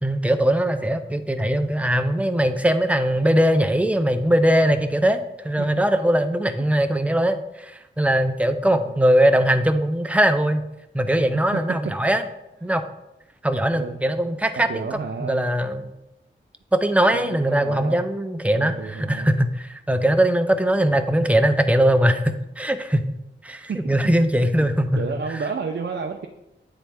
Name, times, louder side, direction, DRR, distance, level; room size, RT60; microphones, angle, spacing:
voice 1, 0.0-10.6 10.9-12.2 12.6-12.8 13.4-15.9 16.7-23.1 23.4-25.0, right 1 dB, 5° right, 8 dB, 0.6 m, -21 dB
voice 2, 8.6-9.0 11.3-11.6 13.7-14.1 14.7-15.4 17.1-18.1 18.5-19.3 23.7-23.8 24.5-24.7 25.0-26.3, right 5 dB, 60° right, 2 dB, 0.6 m, -31 dB
8.9 x 4.1 x 3.5 m, 0.92 s
wide cardioid pair, 65°, 20 cm